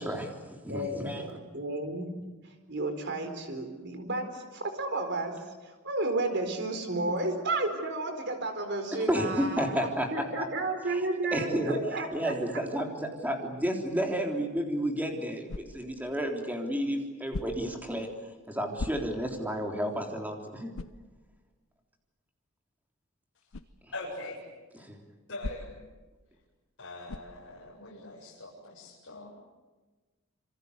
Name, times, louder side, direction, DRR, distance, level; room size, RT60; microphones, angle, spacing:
voice 1, 0.0-1.2 9.1-10.5 10.9-11.0 11.3-11.8 12.1-18.1 18.5-20.7 24.8-25.0, equal, 10° right, 2 dB, 3.7 m, -31 dB
voice 2, 0.7-2.1 2.7-5.3 5.6-12.3, right 2 dB, 55° right, 6 dB, 4.4 m, -32 dB
sound 1, 15.5-16.0 17.3-17.8 18.8-19.4 19.9-20.0 20.7-21.1 23.5-23.8 25.4-25.9 27.1-27.4, left 2 dB, 80° left, 0.9 m, -39 dB
voice 3, 23.9-24.4 25.3-25.7 26.8-29.3, left 2 dB, 60° left, -5 dB, 7.6 m, -42 dB
27.0 x 26.5 x 8.2 m, 1.2 s
head